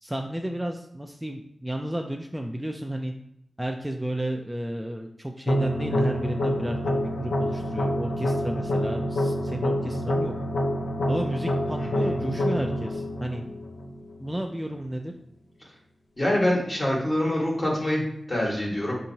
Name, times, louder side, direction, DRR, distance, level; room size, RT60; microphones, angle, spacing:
voice 1, 0.0-3.1 3.6-10.3 11.1-13.4 14.2-15.1, right 1 dB, 5° right, 2 dB, 0.3 m, -32 dB
sound 1, 5.5-14.5, equal, 75° left, 0.5 m, -27 dB
voice 2, 11.8-12.3 16.2-19.0, left 1 dB, 35° left, -3 dB, 1.4 m, -26 dB
5.3 x 2.8 x 2.7 m, 0.79 s
wide cardioid pair, 70°, 0 cm